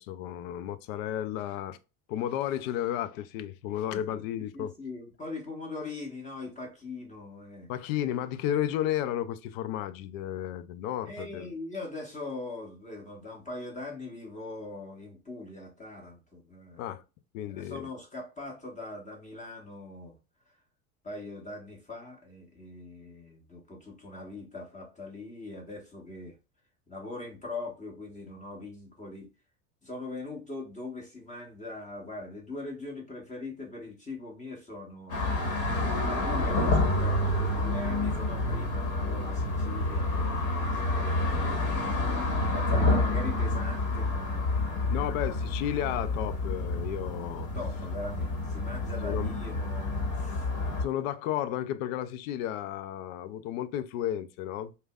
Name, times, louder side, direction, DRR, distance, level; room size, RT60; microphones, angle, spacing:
voice 1, 0.0-1.8 2.1-4.7 7.7-11.6 16.8-17.0 17.3-17.9 44.9-47.5 49.0-49.3 50.8-54.7, left 11 dB, 70° left, 0.5 m, -33 dB
voice 2, 3.9-7.7 11.0-17.0 17.5-20.2 21.0-26.4 26.9-29.3 29.8-35.5 36.0-41.5 42.5-45.1 47.5-50.4, left 2 dB, 15° left, 1.3 m, -41 dB
sound 1, 35.1-50.8, left 2 dB, 45° left, 1.3 m, -28 dB
5.0 x 2.2 x 2.3 m
supercardioid pair, 110°, 41 cm